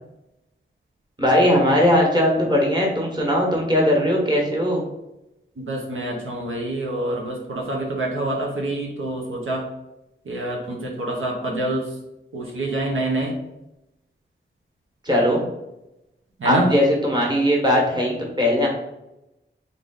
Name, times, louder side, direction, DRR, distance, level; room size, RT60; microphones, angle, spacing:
voice 1, 1.2-4.8 15.0-15.4 16.4-18.7, left 1 dB, 20° right, -2 dB, 1.4 m, -19 dB
voice 2, 5.6-9.6 10.3-11.8 12.3-13.3 16.4-16.7, right 1 dB, 85° right, -1 dB, 1.0 m, -26 dB
3.7 x 3.6 x 3.9 m, 0.91 s
wide cardioid pair, 85°, 20 cm